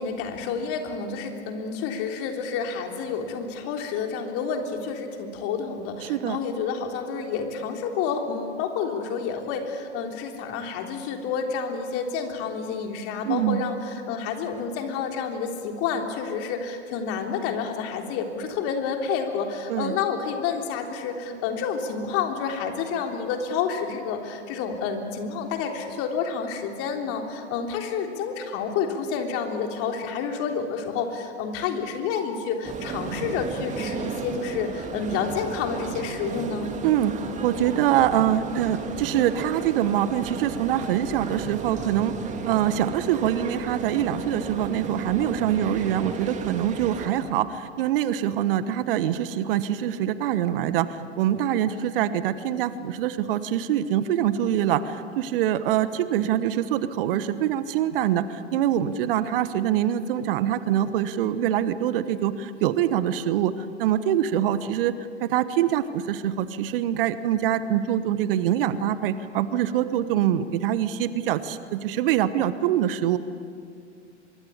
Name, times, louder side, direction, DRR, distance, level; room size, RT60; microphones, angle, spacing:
voice 1, 0.0-36.7, left 6 dB, 40° left, 3 dB, 3.6 m, -29 dB
voice 2, 6.0-6.4 13.2-13.6 19.7-20.0 36.8-37.1 37.4-42.1 42.5-63.5 63.8-64.9 65.2-73.2, right 11 dB, 50° right, 13 dB, 1.2 m, -24 dB
sound 1, 32.6-47.1, right 5 dB, 20° right, 2.4 m, -34 dB
24.5 x 23.5 x 8.6 m, 2.4 s
figure-of-eight pair, 105°, 35 cm